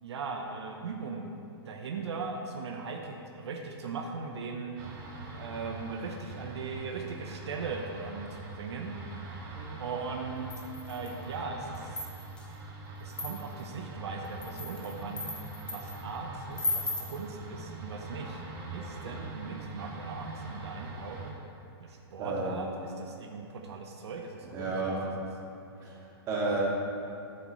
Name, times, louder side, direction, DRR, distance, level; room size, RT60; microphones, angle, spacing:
voice 1, 0.0-1.3 1.6-4.7 5.4-9.2 9.8-10.5 10.9-12.1 13.0-15.3 15.6-18.4 18.7-21.4 21.8-24.7, right 4 dB, 80° right, 1 dB, 1.0 m, -39 dB
sound 1, 4.8-21.3, right 2 dB, 45° right, 2.1 m, -43 dB
sound 2, 10.5-11.2 11.7-12.4 13.1-13.6 14.2-16.0 16.6-17.2, left 2 dB, 5° left, 0.9 m, -36 dB
voice 2, 22.2-22.5 24.5-25.0 25.8-26.0 26.3-26.6, right 3 dB, 25° right, -5 dB, 2.1 m, -31 dB
11.0 x 8.3 x 3.2 m, 2.6 s
hypercardioid pair, 150°, 14 cm